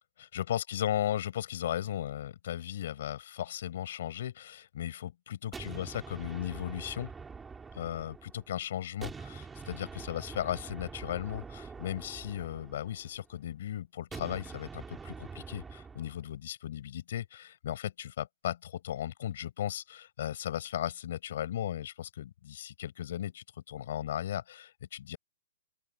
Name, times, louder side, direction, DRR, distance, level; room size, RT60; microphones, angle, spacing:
voice 1, 0.2-7.1 7.7-25.2, left 11 dB, 45° left, 4.9 m, -36 dB
sound 1, 5.5-8.5 9.0-13.3 14.1-16.2, right 5 dB, 5° right, 3.4 m, -45 dB
open air
hypercardioid pair, 175°, 0 cm